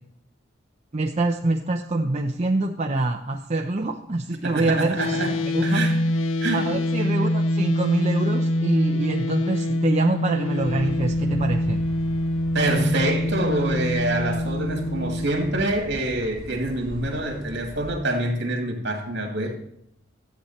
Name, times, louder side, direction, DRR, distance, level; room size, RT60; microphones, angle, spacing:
voice 1, 0.9-5.2 5.5-5.9 6.5-11.8, right 2 dB, 35° right, 0.6 m, -25 dB
voice 2, 4.4-6.0 6.4-6.7 12.5-19.5, right 1 dB, 60° right, 2.4 m, -26 dB
sound 1, 5.0-15.3, left 1 dB, 80° left, 0.5 m, -25 dB
sound 2, 10.6-17.9, equal, 45° left, 3.5 m, -40 dB
13.0 x 8.2 x 4.3 m
head